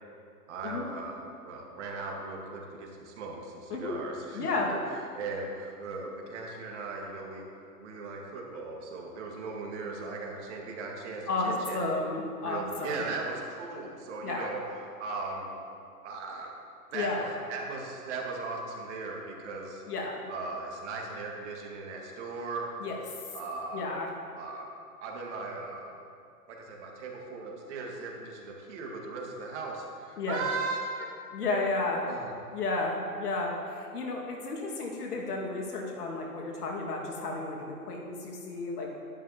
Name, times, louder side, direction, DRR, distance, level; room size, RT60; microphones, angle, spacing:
voice 1, 0.5-4.8 5.1-11.8 12.4-15.5 16.0-16.6 16.9-19.8 20.3-22.7 23.3-23.8 24.3-24.7 25.0-26.0 26.5-31.1 32.0-32.3, right 3 dB, 45° right, -1 dB, 2.0 m, -38 dB
voice 2, 4.3-4.7 11.3-13.0 14.2-14.5 16.9-17.2 19.9-20.2 22.8-22.9 23.7-24.1 30.2-30.4 31.3-32.0 32.5-38.9, left 3 dB, 75° left, 0 dB, 2.1 m, -32 dB
11.0 x 11.0 x 3.0 m, 2.5 s
hypercardioid pair, 130°, 47 cm